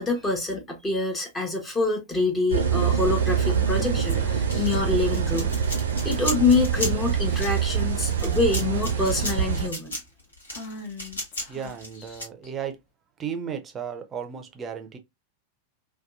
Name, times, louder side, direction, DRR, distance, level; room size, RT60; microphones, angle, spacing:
voice 1, 0.0-10.0, left 3 dB, 15° left, 0.7 m, -26 dB
sound 1, 2.5-9.7, right 7 dB, 65° right, 0.5 m, -25 dB
Female speech woman speaking / Whispering, 3.5-4.9 6.0-6.4 6.8-7.0 7.3-7.8 8.5-9.6 10.5-12.5, left 3 dB, 45° left, 0.9 m, -41 dB
sound 2, 4.5-12.2, equal, 75° left, 1.1 m, -35 dB
voice 2, 11.5-12.8 13.2-15.0, right 7 dB, 20° right, 0.5 m, -34 dB
2.7 x 2.2 x 2.4 m
figure-of-eight pair, 90°, 0 cm